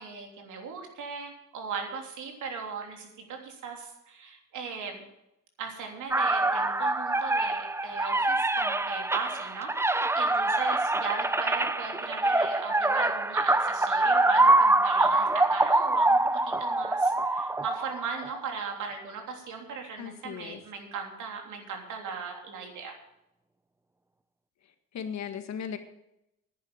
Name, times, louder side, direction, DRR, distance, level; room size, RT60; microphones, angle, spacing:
voice 1, 0.0-5.0 5.6-23.0, right 5 dB, 80° right, 2 dB, 3.3 m, -38 dB
sound 1, 6.1-18.4, right 2 dB, 10° right, 0.5 m, -25 dB
voice 2, 20.0-20.6 24.9-25.8, left 8 dB, 65° left, 8 dB, 1.7 m, -36 dB
10.5 x 10.5 x 7.3 m, 0.85 s
cardioid pair, 90°, 30 cm